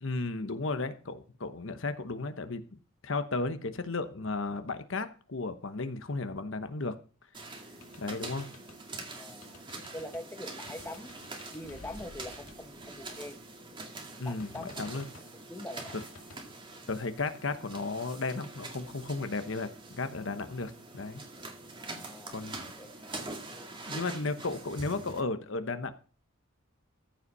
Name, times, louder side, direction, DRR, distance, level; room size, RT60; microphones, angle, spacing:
voice 1, 0.0-2.6 3.0-6.9 8.0-8.5 14.2-15.0 16.9-21.2 22.3-22.6 23.9-25.9, left 3 dB, 60° left, 9 dB, 1.0 m, -34 dB
sound 1, 7.3-25.2, right 2 dB, 25° right, 2.2 m, -45 dB
sound 2, 7.8-8.8 9.4-10.3 10.7-13.5 14.3-15.4 15.9-16.4, left 2 dB, 75° left, 2.2 m, -52 dB
voice 2, 9.2-9.6 9.9-11.2 11.5-13.4 14.2-14.9 15.5-16.0 21.8-22.4 22.7-23.3, left 1 dB, 10° left, 5 dB, 1.4 m, -44 dB
14.5 x 5.6 x 5.5 m, 0.37 s
head